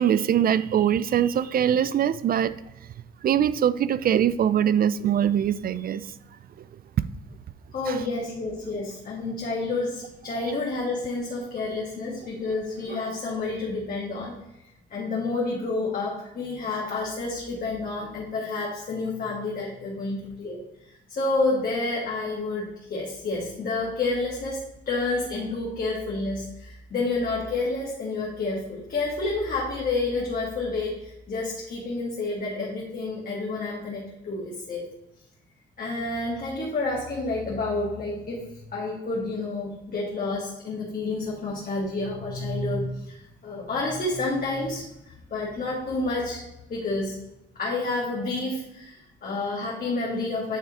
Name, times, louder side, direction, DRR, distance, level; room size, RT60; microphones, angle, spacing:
voice 1, 0.0-2.5 3.2-6.1 7.9-8.0, right 9 dB, 50° right, 16 dB, 0.4 m, -22 dB
voice 2, 7.7-14.4 14.9-34.8 35.8-46.4 46.7-47.2 47.6-50.6, left 3 dB, 45° left, -4 dB, 1.8 m, -29 dB
9.3 x 3.5 x 4.2 m, 0.91 s
cardioid pair, 90°, 20 cm